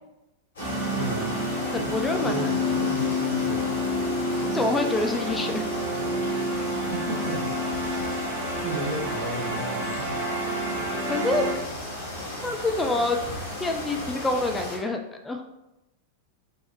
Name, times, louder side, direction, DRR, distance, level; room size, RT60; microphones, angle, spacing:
sound 1, 0.6-14.8, left 1 dB, 70° left, 1.5 m, -35 dB
sound 2, 0.6-11.5, left 1 dB, 45° right, 1.4 m, -29 dB
voice 1, 1.0-1.4 1.7-1.9 2.1-3.9 6.8-7.7 8.6-10.2, right 2 dB, 70° right, -3 dB, 1.3 m, -34 dB
voice 2, 1.7-2.5 4.5-5.7 11.1-11.4 12.4-13.2 13.6-15.4, left 2 dB, 10° left, 4 dB, 0.4 m, -27 dB
5.3 x 3.1 x 3.1 m, 0.94 s
figure-of-eight pair, 90°, 0 cm